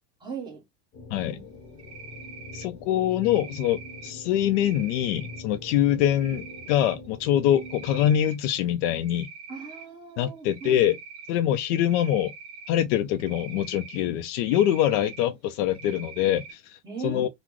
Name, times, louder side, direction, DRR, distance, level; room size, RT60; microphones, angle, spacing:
voice 1, 0.2-0.6 1.2-1.4 9.5-10.8 16.8-17.3, right 5 dB, 10° right, 1.0 m, -38 dB
sound 1, 0.9-8.2, left 3 dB, 25° left, 0.8 m, -43 dB
Cricket, 1.8-2.7 3.2-4.1 4.5-5.4 6.1-6.9 7.4-8.4 8.7-9.9 10.5-11.3 11.8-12.7 13.2-14.0 14.4-15.2 15.7-16.5, right 5 dB, 40° right, 1.6 m, -44 dB
voice 2, 2.5-9.3 10.2-11.0 11.3-12.3 12.7-17.3, left 11 dB, 75° left, 0.5 m, -24 dB
3.9 x 2.0 x 2.9 m
cardioid pair, 175°, 37 cm